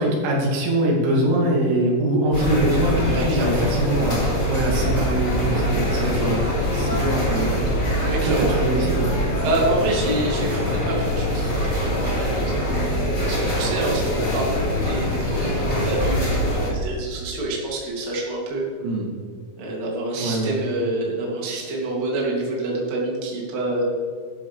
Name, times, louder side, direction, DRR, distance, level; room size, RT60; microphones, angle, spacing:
voice 1, 0.0-6.4 6.7-7.9 8.2-9.1 13.6-13.7 18.8-19.1 20.2-20.6, right 1 dB, 85° right, -2 dB, 5.1 m, -23 dB
sound 1, 2.3-16.7, equal, 20° left, 2.7 m, -23 dB
voice 2, 3.1-3.7 8.0-8.5 9.4-12.6 13.3-18.6 19.6-23.8, right 1 dB, 40° right, -4 dB, 3.3 m, -27 dB
13.0 x 11.5 x 3.4 m, 2.2 s
omnidirectional pair, 5.7 m